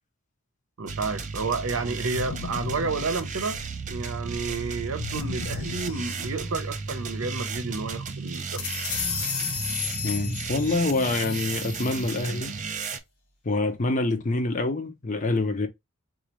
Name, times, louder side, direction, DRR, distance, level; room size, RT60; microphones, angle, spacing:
voice 1, 0.8-3.6 3.9-8.7, right 4 dB, 75° right, 0.7 m, -31 dB
sound 1, 0.9-13.0, right 4 dB, 35° right, 0.4 m, -34 dB
sound 2, 2.1-3.9 5.0-6.7, left 6 dB, 75° left, 0.4 m, -37 dB
sound 3, 8.3-12.3, left 7 dB, 90° left, 1.1 m, -33 dB
voice 2, 10.0-12.6 13.4-15.7, left 2 dB, 35° left, 0.6 m, -26 dB
4.1 x 2.5 x 2.9 m
head